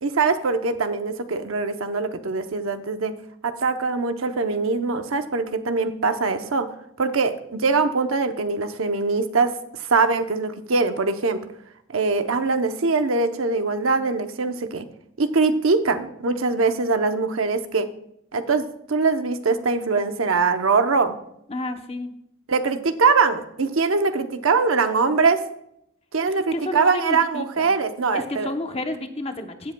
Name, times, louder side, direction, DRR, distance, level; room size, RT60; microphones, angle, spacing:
voice 1, 0.0-3.1 3.4-6.7 7.0-11.4 11.9-14.8 15.2-17.9 18.3-21.2 22.5-25.4 26.1-28.5, right 4 dB, 80° right, 8 dB, 0.8 m, -22 dB
voice 2, 21.5-22.1 26.3-27.7 28.1-29.7, left 2 dB, 30° left, 6 dB, 0.8 m, -31 dB
16.5 x 7.5 x 2.3 m, 0.75 s
head